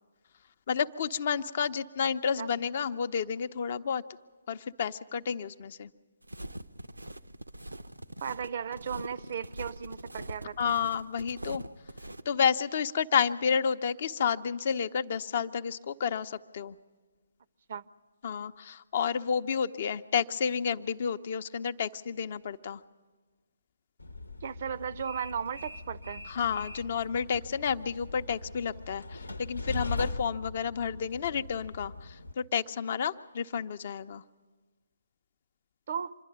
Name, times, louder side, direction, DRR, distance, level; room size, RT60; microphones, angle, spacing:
voice 1, 0.7-4.0 4.5-5.9 10.6-11.6 12.3-16.8 18.2-22.8 26.3-34.2, left 7 dB, 45° left, 12 dB, 0.6 m, -30 dB
sound 1, 6.2-12.2, right 1 dB, 85° right, 0.7 m, -43 dB
voice 2, 8.2-10.7 17.7-17.8 24.4-26.3 35.9-36.1, right 7 dB, 45° right, 16 dB, 0.5 m, -36 dB
Train, 24.0-32.3, left 2 dB, 80° left, 0.9 m, -40 dB
26.0 x 11.0 x 9.2 m, 1.4 s
figure-of-eight pair, 140°, 0 cm